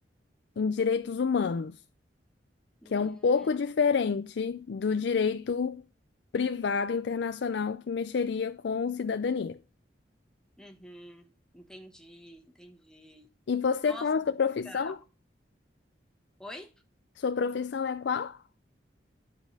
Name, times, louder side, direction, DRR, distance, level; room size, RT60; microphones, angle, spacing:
voice 1, 0.6-1.8 2.9-5.8 6.3-9.6 13.5-15.0 17.2-18.4, left 5 dB, 70° left, 0.4 m, -28 dB
voice 2, 2.8-3.5 10.6-13.3 13.8-14.1 14.5-15.0 16.4-16.7, left 1 dB, 5° left, 1.1 m, -47 dB
10.0 x 4.8 x 6.5 m
head